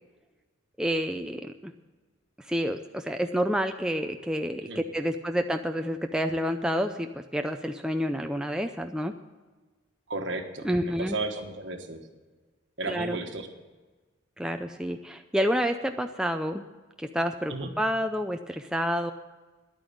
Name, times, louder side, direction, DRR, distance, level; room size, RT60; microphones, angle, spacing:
voice 1, 0.8-1.7 2.4-9.1 10.6-11.2 12.9-13.2 14.4-16.6 17.0-19.1, equal, 5° right, 5 dB, 0.4 m, -29 dB
voice 2, 10.1-12.0 12.8-13.5 17.5-17.7, right 2 dB, 65° right, 5 dB, 1.5 m, -34 dB
10.5 x 8.9 x 8.5 m, 1.3 s
head